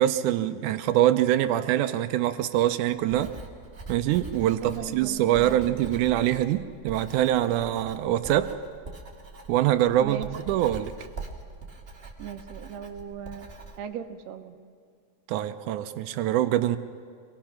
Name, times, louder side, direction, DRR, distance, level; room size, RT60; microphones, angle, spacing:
voice 1, 0.0-3.3 3.9-8.5 9.5-10.9 15.3-16.8, right 12 dB, 85° right, 9 dB, 2.1 m, -24 dB
Writing, 3.0-13.8, right 3 dB, 30° right, 1.1 m, -43 dB
voice 2, 4.4-5.8 10.0-10.3 12.2-13.5 13.8-14.5, right 9 dB, 70° right, 5 dB, 2.0 m, -38 dB
25.5 x 18.5 x 5.8 m, 2.3 s
omnidirectional pair, 3.5 m